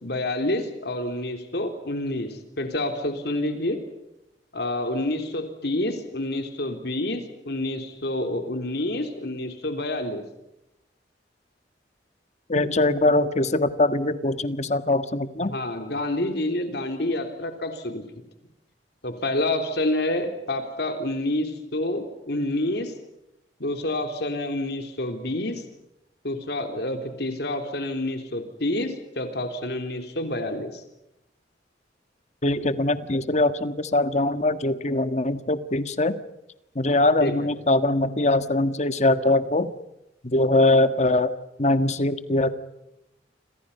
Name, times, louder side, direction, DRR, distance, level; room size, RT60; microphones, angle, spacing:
voice 1, 0.0-3.8 4.5-10.2 15.5-18.0 19.0-22.9 23.6-25.6 26.2-30.8 37.2-37.3, left 1 dB, 65° left, 6 dB, 3.4 m, -28 dB
voice 2, 12.5-15.5 32.4-36.2 36.7-39.7 40.2-41.3 41.6-42.5, left 2 dB, 40° left, 11 dB, 1.5 m, -22 dB
29.0 x 27.0 x 5.6 m, 0.89 s
head